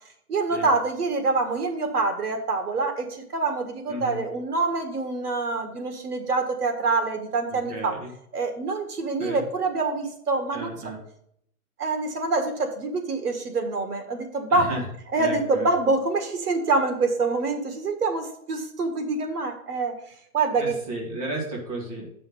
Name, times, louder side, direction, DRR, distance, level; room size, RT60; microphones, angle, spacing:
voice 1, 0.3-7.9 8.3-10.7 11.8-14.7 15.1-19.9 20.3-20.8, right 3 dB, 85° right, 6 dB, 1.8 m, -26 dB
voice 2, 3.9-4.2 7.5-8.1 9.2-9.5 10.5-11.0 14.5-14.8 15.2-15.7 20.6-22.1, right 2 dB, 25° right, -2 dB, 1.9 m, -33 dB
7.9 x 5.6 x 5.5 m, 0.71 s
hypercardioid pair, 180°, 45 cm